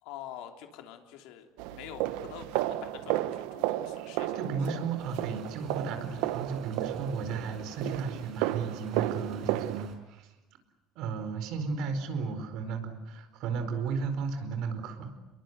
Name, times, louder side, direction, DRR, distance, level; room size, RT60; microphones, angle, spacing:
voice 1, 0.0-4.4, left 10 dB, 70° left, 4 dB, 3.3 m, -46 dB
sound 1, 1.6-9.9, right 15 dB, 90° right, 1.1 m, -33 dB
voice 2, 4.3-10.3 11.0-15.1, right 5 dB, 55° right, 8 dB, 4.6 m, -34 dB
sound 2, 5.0-10.0, right 5 dB, 35° right, 5.1 m, -53 dB
28.5 x 22.0 x 8.1 m, 1.1 s
cardioid pair, 175°, 0 cm